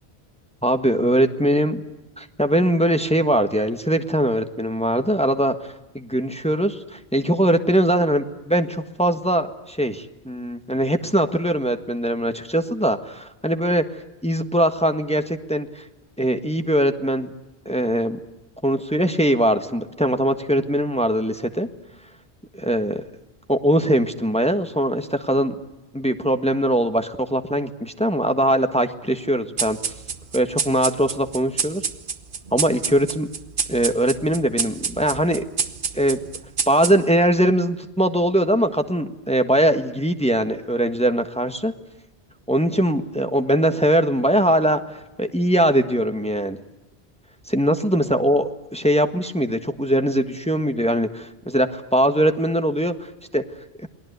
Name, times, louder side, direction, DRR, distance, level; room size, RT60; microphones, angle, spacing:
voice 1, 0.6-1.8 2.2-5.5 5.9-13.8 14.2-15.8 16.2-17.3 17.6-18.2 18.6-21.7 22.5-23.0 23.5-25.5 25.9-29.8 30.3-31.8 32.5-33.3 33.7-35.4 35.9-36.2 36.7-41.7 42.5-44.8 45.2-46.6 47.5-52.9 53.3-53.4 53.8-53.9, right 1 dB, 5° left, 7 dB, 1.5 m, -21 dB
sound 1, 29.6-37.3, right 5 dB, 55° right, 1.3 m, -29 dB
29.0 x 21.5 x 8.2 m, 1.0 s
omnidirectional pair, 1.1 m